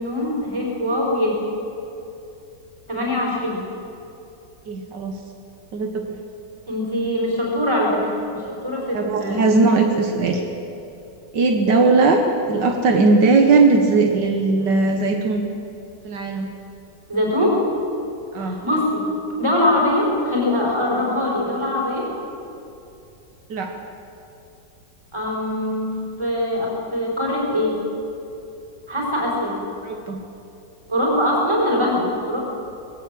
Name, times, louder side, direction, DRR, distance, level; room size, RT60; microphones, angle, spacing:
voice 1, 0.0-1.4 2.9-3.6 6.7-9.4 17.1-17.6 18.4-19.0 19.4-22.1 25.1-25.9 26.2-27.8 28.9-29.6 30.9-32.4, left 1 dB, 15° right, -3 dB, 4.7 m, -22 dB
voice 2, 4.7-5.1 5.7-6.0 8.9-10.4 11.3-15.4 16.1-16.5 18.3-18.6 23.5-23.7 29.8-30.2, right 3 dB, 75° right, 3 dB, 1.9 m, -18 dB
20.0 x 17.0 x 7.7 m, 2.8 s
omnidirectional pair, 1.9 m